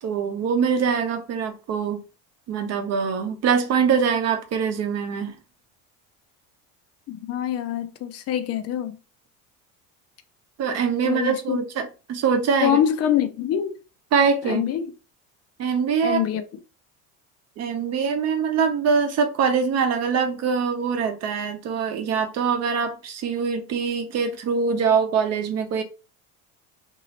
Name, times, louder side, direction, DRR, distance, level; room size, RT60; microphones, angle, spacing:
voice 1, 0.0-2.0 2.5-5.4 10.6-12.8 14.1-14.6 15.6-16.2 17.6-25.8, right 6 dB, 45° right, 0.8 m, -23 dB
voice 2, 7.1-9.0 11.0-11.6 12.6-13.8 14.4-14.9 16.0-16.4, left 10 dB, 40° left, 0.5 m, -24 dB
3.0 x 2.6 x 2.9 m
cardioid pair, 125°, 37 cm